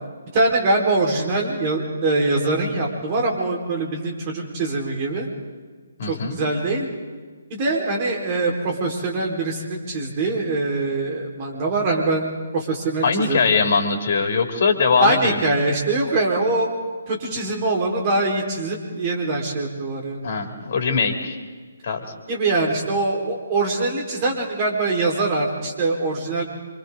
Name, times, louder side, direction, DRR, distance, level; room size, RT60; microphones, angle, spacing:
voice 1, 0.3-5.3 6.1-6.9 7.5-13.4 15.0-16.7 17.1-20.3 22.3-26.4, right 2 dB, 30° right, 0 dB, 4.5 m, -23 dB
voice 2, 6.0-6.4 13.0-15.5 20.2-21.4 21.8-22.1, left 5 dB, 45° left, 4 dB, 2.9 m, -21 dB
27.0 x 25.5 x 3.9 m, 1.5 s
figure-of-eight pair, 140°, 0 cm